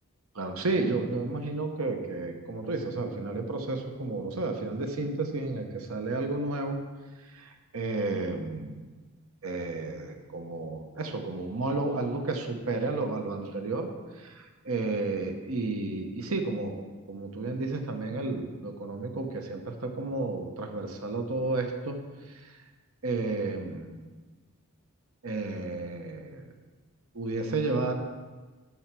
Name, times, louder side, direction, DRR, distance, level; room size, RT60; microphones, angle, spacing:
voice 1, 0.4-6.8 7.7-8.8 9.4-13.9 14.6-16.8 17.1-22.0 23.0-24.1 25.2-26.4 27.1-27.9, right 3 dB, 75° right, 5 dB, 1.1 m, -32 dB
13.0 x 4.6 x 6.1 m, 1.3 s
head